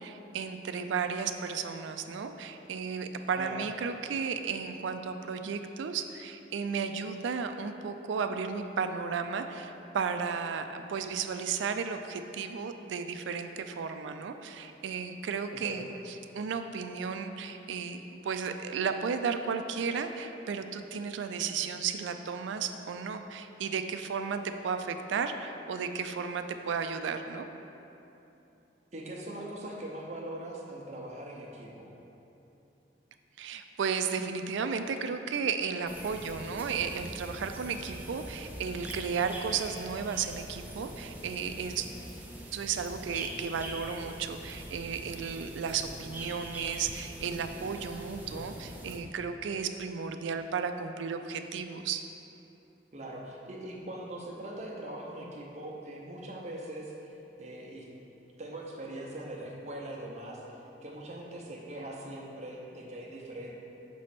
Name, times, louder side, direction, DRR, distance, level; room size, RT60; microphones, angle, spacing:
voice 1, 0.0-27.4 33.4-41.9 42.5-52.0, right 6 dB, 85° right, 8 dB, 0.4 m, -34 dB
voice 2, 3.4-3.7 15.5-15.8 28.9-31.9 52.9-56.9 57.4-57.9 58.4-63.6, right 1 dB, 35° right, -2 dB, 0.7 m, -41 dB
sound 1, 35.9-49.0, right 1 dB, 10° right, 0.4 m, -43 dB
6.0 x 3.2 x 5.8 m, 2.9 s
head